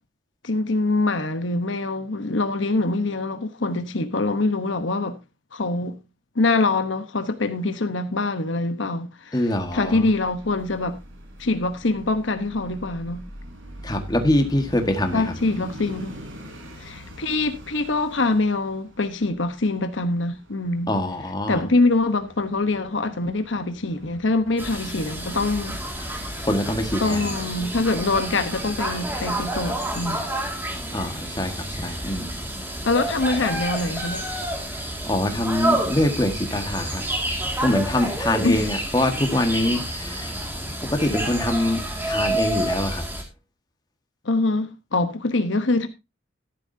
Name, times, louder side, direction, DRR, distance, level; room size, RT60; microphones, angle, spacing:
voice 1, 0.4-5.2 5.5-6.0 6.3-9.4 9.7-11.0 11.4-13.3 15.1-16.1 16.8-21.0 21.5-26.2 27.0-30.3 32.8-34.3 38.4-38.7 44.2-45.9, left 2 dB, 75° left, 1.1 m, -24 dB
voice 2, 9.3-10.0 13.8-15.3 20.9-21.6 26.5-27.3 30.9-32.3 35.0-37.0 37.6-40.3 40.9-41.8 42.1-43.0, left 1 dB, 20° left, 1.7 m, -24 dB
sound 1, 9.6-27.4, equal, 85° right, 3.9 m, -43 dB
sound 2, 24.6-43.2, right 1 dB, 10° right, 2.2 m, -29 dB
13.0 x 11.5 x 2.8 m
head